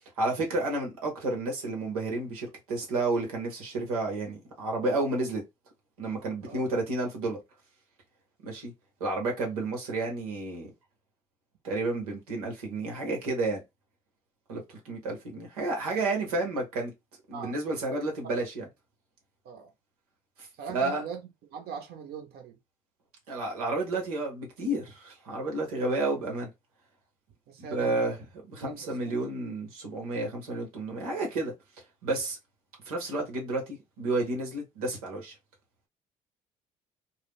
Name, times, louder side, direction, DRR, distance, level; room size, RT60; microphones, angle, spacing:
voice 1, 0.2-5.4 6.0-7.4 8.4-8.7 9.0-10.7 11.6-13.6 14.5-16.9 17.3-18.7 20.7-21.0 23.3-26.5 27.6-28.2 28.5-31.5 32.0-32.4 32.9-35.3, right 2 dB, 85° right, 0.9 m, -31 dB
voice 2, 20.6-21.2 21.5-22.6 27.5-28.1 28.6-29.1, right 6 dB, 60° right, 0.7 m, -41 dB
2.3 x 2.0 x 3.4 m
hypercardioid pair, 55°, 18 cm